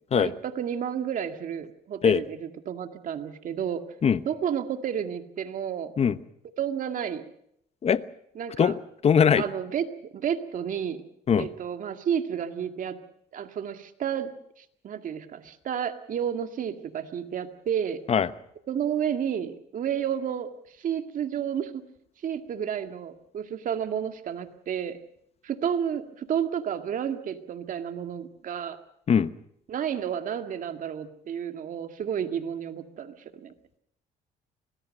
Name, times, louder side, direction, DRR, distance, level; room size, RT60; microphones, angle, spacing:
voice 1, 0.1-3.8 4.3-5.9 6.6-7.2 8.4-8.7 9.4-11.0 11.4-13.0 13.3-14.3 14.6-18.0 18.7-21.8 22.2-25.0 25.4-28.8 29.7-33.5, right 8 dB, 50° right, 7 dB, 2.1 m, -31 dB
voice 2, 8.6-9.4 11.3-11.5 18.1-18.3 29.1-29.3, left 7 dB, 40° left, 15 dB, 1.0 m, -21 dB
25.0 x 20.0 x 6.5 m, 0.73 s
cardioid pair, 110°, 17 cm